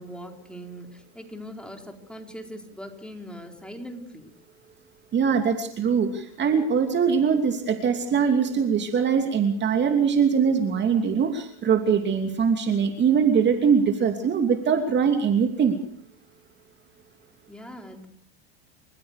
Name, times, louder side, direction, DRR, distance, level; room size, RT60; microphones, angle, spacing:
voice 1, 0.0-4.3 17.5-18.1, equal, 5° left, 3 dB, 4.2 m, -41 dB
voice 2, 5.1-15.8, right 6 dB, 35° right, 5 dB, 2.8 m, -22 dB
30.0 x 15.5 x 6.7 m, 0.63 s
supercardioid pair, 105°, 32 cm